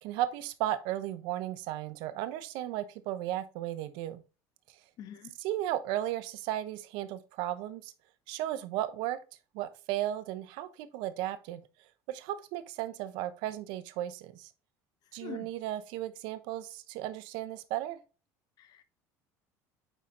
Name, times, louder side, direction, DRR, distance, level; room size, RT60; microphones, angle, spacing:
voice 1, 0.0-4.2 5.4-7.9 8.3-9.2 9.5-11.6 12.1-14.5 15.1-18.0, right 13 dB, 75° right, 0.9 m, -35 dB
voice 2, 5.0-5.3 15.2-15.5 18.6-18.8, left 10 dB, 55° left, 1.1 m, -44 dB
9.0 x 4.2 x 3.0 m
supercardioid pair, 110°, 8 cm